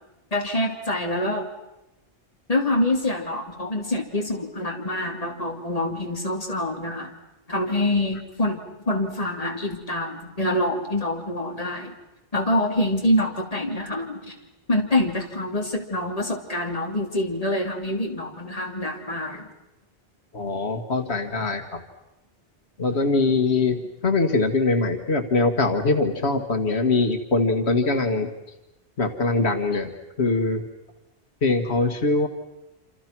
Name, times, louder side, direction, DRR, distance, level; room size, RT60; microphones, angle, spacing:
voice 1, 0.3-1.5 2.5-7.1 7.5-11.9 12.3-14.3 14.7-19.4, left 1 dB, 35° left, 2 dB, 3.3 m, -26 dB
voice 2, 20.3-21.8 22.8-28.3 29.0-29.9 30.2-30.6 31.4-32.3, left 3 dB, 90° left, 6 dB, 1.9 m, -22 dB
27.5 x 27.5 x 6.1 m, 0.97 s
omnidirectional pair, 1.1 m